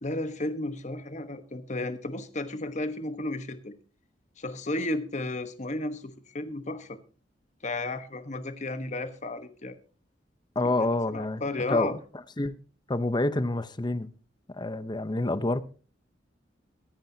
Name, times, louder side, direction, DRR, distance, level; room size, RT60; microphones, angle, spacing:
voice 1, 0.0-3.7 4.4-7.0 7.6-9.8 10.6-11.9, left 2 dB, 40° left, 1.2 m, -33 dB
voice 2, 10.6-11.4 11.7-12.0 12.4-12.6 12.9-14.1 14.5-15.6, left 2 dB, 25° left, 0.8 m, -27 dB
23.0 x 10.5 x 2.8 m
head